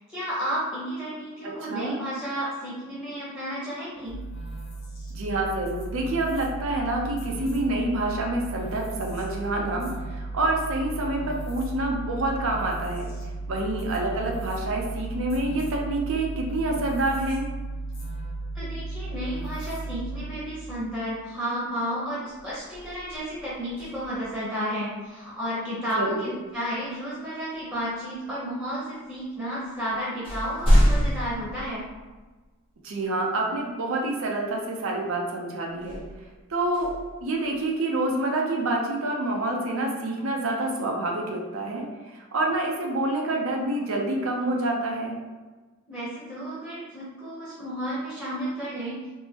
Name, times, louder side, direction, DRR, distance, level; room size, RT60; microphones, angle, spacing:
voice 1, 0.0-4.2 18.5-31.9 45.9-49.0, equal, 5° right, -9 dB, 0.8 m, -32 dB
voice 2, 1.4-2.0 5.1-13.1 13.5-17.5 26.0-26.3 32.8-36.0 36.5-36.9 37.2-45.2, right 2 dB, 75° right, 0 dB, 0.5 m, -27 dB
sound 1, 4.1-20.6, right 2 dB, 70° left, 0.9 m, -35 dB
sound 2, 21.7-21.9 22.3-24.4 26.5-26.7 27.5-28.3 29.1-29.2 29.6-32.5 33.0-33.1 35.7-37.9, equal, 25° left, 0.9 m, -27 dB
3.5 x 2.1 x 2.8 m, 1.3 s
head